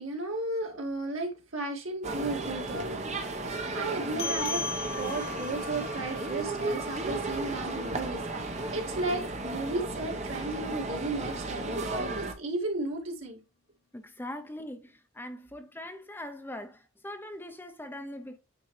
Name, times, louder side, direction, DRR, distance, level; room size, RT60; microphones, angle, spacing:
voice 1, 0.0-13.4, right 2 dB, 75° right, 2.2 m, -35 dB
sound 1, 2.0-12.3, right 2 dB, 35° right, 0.9 m, -34 dB
sound 2, 4.2-9.0, left 5 dB, 50° left, 1.5 m, -39 dB
voice 2, 13.9-18.4, left 1 dB, 10° left, 0.6 m, -41 dB
8.8 x 4.1 x 3.2 m
head